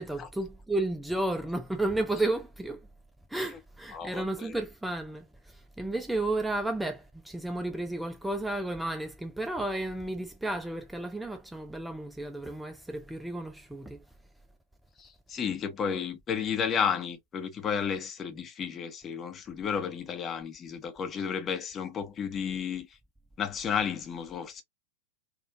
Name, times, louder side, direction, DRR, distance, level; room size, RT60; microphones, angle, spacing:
voice 1, 0.0-2.9 3.3-14.0, right 2 dB, 5° right, 0.5 m, -32 dB
voice 2, 3.9-4.5 15.0-22.9 23.4-24.6, left 7 dB, 25° left, 1.0 m, -32 dB
4.3 x 2.5 x 2.7 m
figure-of-eight pair, 90°, 0 cm